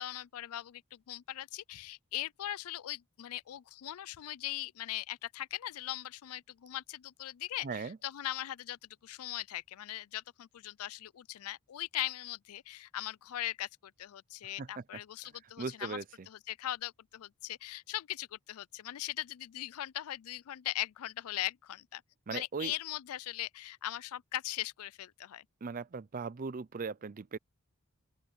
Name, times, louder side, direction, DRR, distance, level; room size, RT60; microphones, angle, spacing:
voice 1, 0.0-16.0 16.3-22.0 22.3-25.4, left 14 dB, 75° left, 0.4 m, -40 dB
voice 2, 7.6-8.0 14.6-14.8 15.6-16.0 22.3-22.7 25.6-27.4, right 4 dB, 40° right, 0.5 m, -38 dB
open air
head